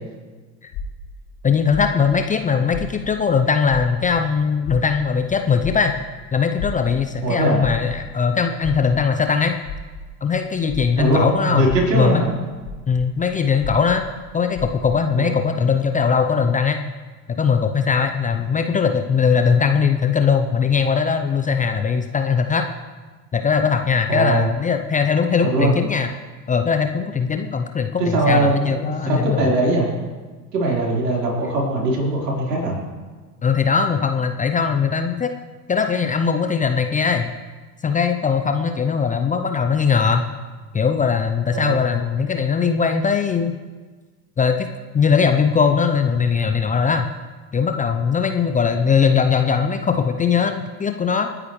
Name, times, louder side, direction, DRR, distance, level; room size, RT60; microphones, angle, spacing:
sound 1, 0.7-3.4 3.6-11.2 11.6-15.1, left 3 dB, 45° left, 2.1 m, -34 dB
voice 1, 1.4-5.9 6.3-9.5 10.2-11.7 11.9-12.2 12.9-14.0 14.3-16.8 17.3-22.7 23.3-26.1 26.5-29.5 33.4-35.3 35.7-37.3 37.8-40.2 40.7-43.6 44.4-44.7 44.9-47.1 47.5-51.3, left 6 dB, 15° left, 6 dB, 0.6 m, -20 dB
voice 2, 7.2-7.6 11.0-12.3 15.1-15.4 24.1-24.5 25.5-25.8 28.0-29.9 30.5-32.8 41.5-41.9, right 2 dB, 70° right, -3 dB, 4.5 m, -21 dB
28.0 x 9.8 x 3.2 m, 1.4 s
figure-of-eight pair, 75°, 50 cm